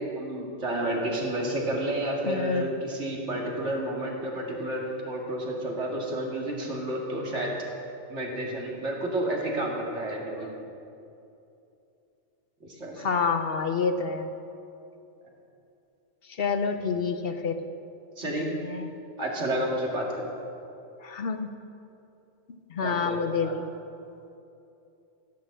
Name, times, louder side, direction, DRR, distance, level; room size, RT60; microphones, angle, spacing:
voice 1, 0.0-7.5 8.1-10.5 12.6-13.1 18.2-18.5 19.2-20.3 22.8-23.5, right 1 dB, 85° right, -1 dB, 2.5 m, -30 dB
voice 2, 2.3-2.7 13.0-14.3 16.3-17.6 18.2-18.9 21.0-21.5 22.7-23.7, left 5 dB, 60° left, 8 dB, 0.9 m, -28 dB
16.5 x 7.1 x 7.8 m, 2.8 s
omnidirectional pair, 1.2 m